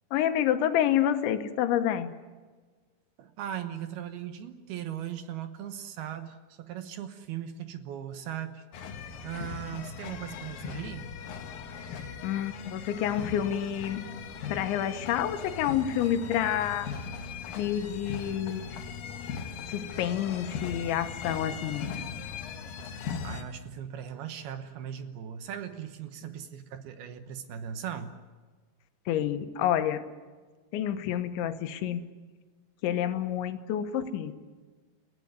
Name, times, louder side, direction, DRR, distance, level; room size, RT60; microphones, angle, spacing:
voice 1, 0.1-2.2 12.2-14.0 14.5-16.9 17.6-18.6 19.7-21.9 29.1-30.0 30.7-32.0 32.8-34.3, left 10 dB, 85° left, 9 dB, 3.5 m, -28 dB
voice 2, 3.2-8.6 9.2-11.1 23.2-28.2, right 9 dB, 70° right, 9 dB, 2.7 m, -38 dB
sound 1, 8.7-23.4, left 6 dB, 60° left, 2.6 m, -39 dB
29.5 x 15.5 x 9.6 m, 1.4 s
omnidirectional pair, 5.2 m